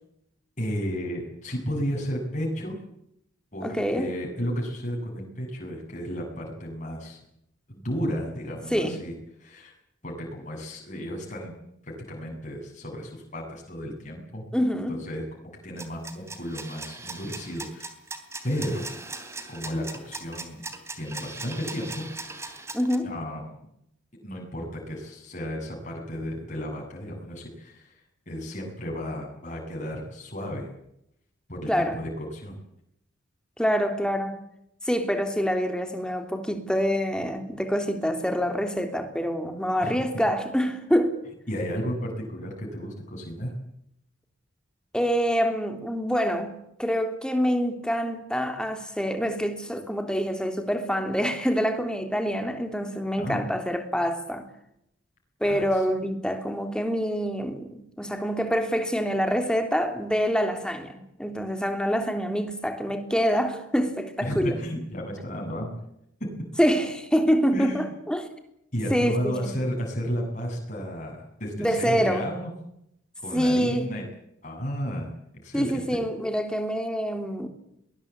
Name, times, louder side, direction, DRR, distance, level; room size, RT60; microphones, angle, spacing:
voice 1, 0.6-2.8 3.5-7.2 7.7-9.1 9.4-9.7 10.0-11.6 11.8-14.4 14.9-17.9 18.4-18.9 19.5-20.6 21.0-22.0 23.0-23.6 24.2-30.7 31.5-32.6 39.8-40.0 41.5-43.5 53.2-53.4 55.4-55.8 64.2-65.8 67.5-67.9 68.7-72.5 73.2-74.0 74.4-75.1 75.4-75.8, equal, 40° left, 7.6 m, -33 dB
voice 2, 3.6-4.1 8.7-8.9 14.5-15.0 22.7-23.1 31.7-32.0 33.6-34.4 34.8-41.2 44.9-54.4 55.4-64.6 66.6-68.3 68.9-69.5 71.6-72.3 73.3-73.9 75.5-77.5, equal, 5° left, 3.1 m, -26 dB
sound 1, 15.8-23.0, right 3 dB, 15° right, 3.1 m, -39 dB
22.5 x 20.5 x 8.6 m
head